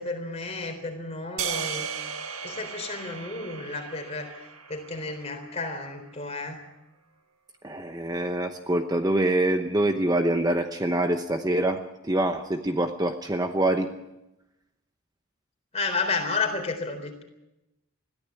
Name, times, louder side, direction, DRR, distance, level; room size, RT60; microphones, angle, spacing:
voice 1, 0.0-1.9 2.1-4.3 4.7-6.6 15.7-17.2, left 3 dB, 30° left, 4 dB, 3.9 m, -32 dB
sound 1, 1.4-5.7, right 7 dB, 75° right, 1.6 m, -36 dB
voice 2, 7.6-13.9, right 1 dB, 20° right, 6 dB, 0.9 m, -25 dB
21.0 x 14.5 x 8.4 m, 0.92 s
head